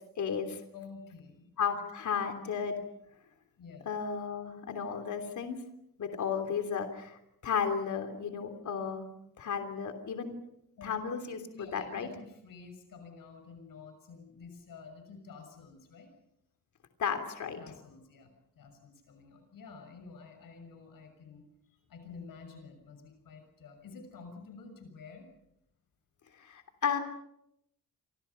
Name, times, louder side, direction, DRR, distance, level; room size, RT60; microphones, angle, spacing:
voice 1, 0.2-0.6 1.6-2.8 3.8-5.6 6.0-9.1 9.4-10.4 10.8-12.1 17.0-17.6 26.4-27.0, left 6 dB, 60° left, 6 dB, 3.2 m, -34 dB
voice 2, 0.7-1.5 3.6-3.9 10.8-10.9 11.5-16.1 17.6-25.3, left 4 dB, 75° left, 6 dB, 6.6 m, -50 dB
29.0 x 26.5 x 5.7 m, 0.79 s
wide cardioid pair, 175°, 34 cm